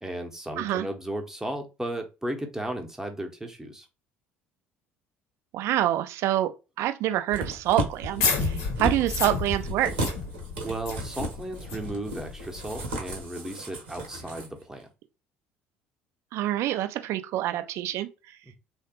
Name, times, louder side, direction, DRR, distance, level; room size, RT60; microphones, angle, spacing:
voice 1, 0.0-3.9 10.6-14.9, right 1 dB, 10° right, 0.8 m, -35 dB
voice 2, 5.5-6.5 6.8-9.9 16.3-18.1, right 13 dB, 50° right, 0.4 m, -26 dB
sound 1, 7.3-14.5 14.8-14.9, right 1 dB, 70° right, 0.8 m, -34 dB
sound 2, 7.9-13.2, left 4 dB, 55° left, 0.7 m, -32 dB
3.2 x 2.0 x 2.9 m
figure-of-eight pair, 55°, 6 cm